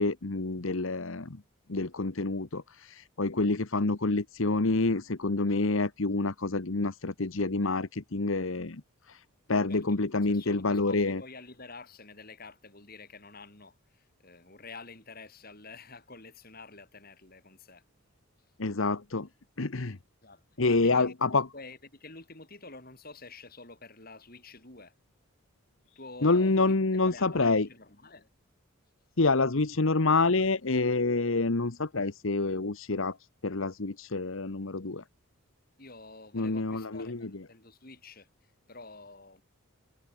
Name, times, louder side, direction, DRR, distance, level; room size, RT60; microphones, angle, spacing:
voice 1, 0.0-1.4 1.7-8.8 9.1-9.2 9.5-11.2 18.6-19.3 19.6-20.0 20.6-21.5 26.2-27.7 29.2-33.2 33.4-35.0 36.3-37.3, left 3 dB, 65° left, 1.1 m, -27 dB
voice 2, 9.7-17.8 20.2-24.9 26.0-28.3 29.2-29.3 35.8-39.4, left 3 dB, 40° left, 4.5 m, -49 dB
head